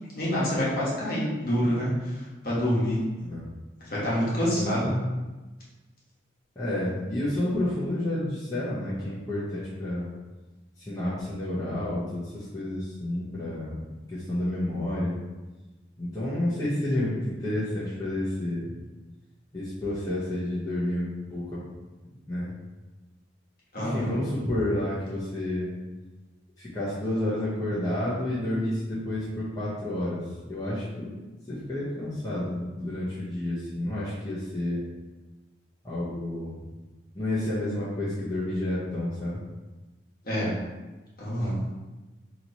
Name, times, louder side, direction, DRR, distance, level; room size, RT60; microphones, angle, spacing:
voice 1, 0.1-3.0 3.8-4.9 23.7-24.1 40.2-40.5 41.2-41.6, equal, 50° left, -7 dB, 1.3 m, -27 dB
voice 2, 6.6-10.1 10.8-13.8 14.1-15.2 16.0-18.8 19.5-21.4 22.3-22.5 23.8-25.7 26.6-31.1 31.5-34.8 35.8-36.6 37.1-39.4, left 1 dB, 20° left, -11 dB, 0.8 m, -30 dB
3.0 x 2.9 x 3.9 m, 1.2 s
head